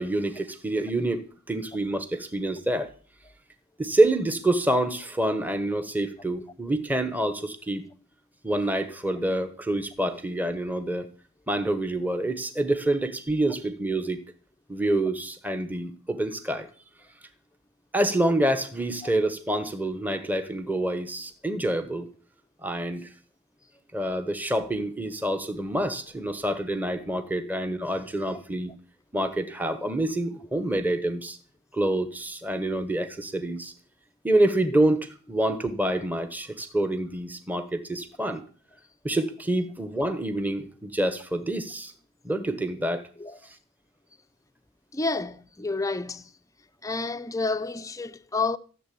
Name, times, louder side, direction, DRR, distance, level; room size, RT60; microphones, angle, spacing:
voice 1, 0.0-2.9 3.8-7.8 8.4-11.1 11.5-14.2 14.7-16.7 17.9-22.1 22.6-23.1 23.9-28.7 29.1-31.4 31.7-33.7 34.2-38.4 39.0-41.9 42.2-43.0, right 1 dB, 10° right, 1.2 m, -27 dB
voice 2, 44.9-46.3 46.8-48.6, left 3 dB, 15° left, 0.6 m, -29 dB
15.0 x 7.4 x 8.6 m
head